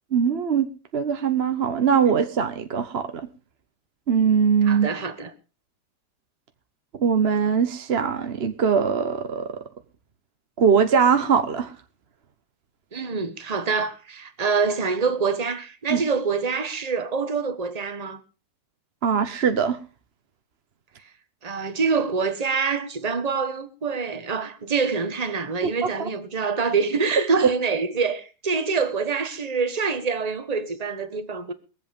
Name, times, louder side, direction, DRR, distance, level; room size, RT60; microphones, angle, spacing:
voice 1, 0.1-0.7 0.9-3.1 4.1-4.9 7.0-9.5 10.6-11.7 15.9-16.0 19.0-19.8, right 6 dB, 40° right, 0.9 m, -21 dB
voice 2, 4.6-5.3 12.9-18.2 21.4-31.5, right 5 dB, 25° right, 1.2 m, -26 dB
22.5 x 8.1 x 5.3 m
omnidirectional pair, 2.1 m